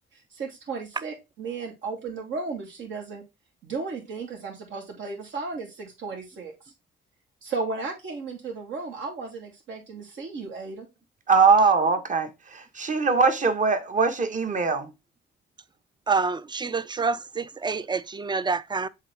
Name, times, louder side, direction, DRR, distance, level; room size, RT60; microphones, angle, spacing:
voice 1, 0.1-3.2 3.6-6.7 7.4-10.9, right 4 dB, 70° right, 3.1 m, -35 dB
voice 2, 11.3-14.9, right 4 dB, 40° right, 1.4 m, -21 dB
voice 3, 16.1-18.9, right 4 dB, 20° right, 0.5 m, -27 dB
7.4 x 3.8 x 3.5 m
cardioid pair, 90°, 20 cm